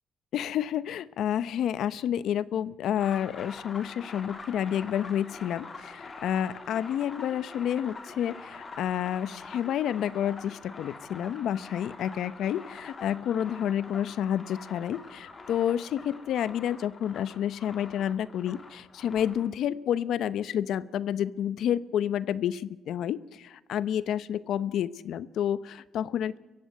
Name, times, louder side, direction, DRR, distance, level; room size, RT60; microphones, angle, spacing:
voice 1, 0.3-26.4, left 10 dB, 75° left, 16 dB, 0.8 m, -29 dB
sound 1, 3.0-19.5, left 3 dB, 35° left, 3.1 m, -45 dB
24.0 x 15.5 x 9.5 m, 1.1 s
cardioid pair, 90°, 0 cm